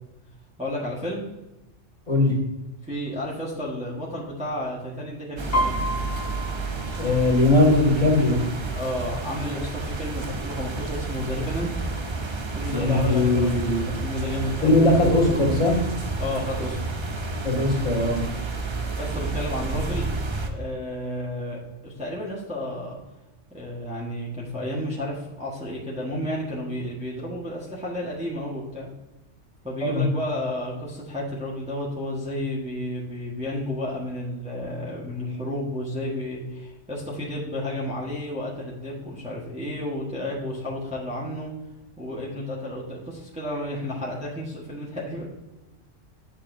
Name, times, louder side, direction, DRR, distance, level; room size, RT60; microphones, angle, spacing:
voice 1, 0.6-1.2 2.8-5.8 8.7-11.7 12.5-13.7 14.0-15.4 16.2-17.0 19.0-20.1 20.5-23.0 23.5-28.9 29.6-41.5 42.0-45.3, left 1 dB, 5° right, -6 dB, 1.3 m, -32 dB
sound 1, 5.4-20.5, right 3 dB, 35° right, 0.5 m, -30 dB
Piano, 5.5-9.2 9.5-9.9 10.3-10.9 11.5-11.6 11.8-12.9 13.2-13.3, equal, 15° left, 1.2 m, -31 dB
voice 2, 7.0-8.4 12.7-13.9 14.6-15.8 17.4-18.2 29.8-30.0, left 2 dB, 40° left, -4 dB, 2.2 m, -20 dB
8.1 x 6.7 x 2.7 m, 1.0 s
omnidirectional pair, 1.2 m